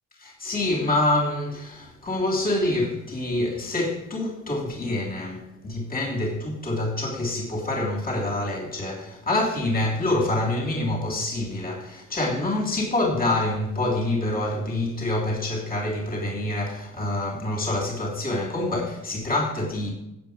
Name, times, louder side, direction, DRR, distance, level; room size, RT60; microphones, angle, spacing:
voice 1, 0.2-19.9, left 2 dB, 30° left, 3.3 m, -26 dB
15.5 x 7.9 x 5.2 m
cardioid pair, 90°, 30 cm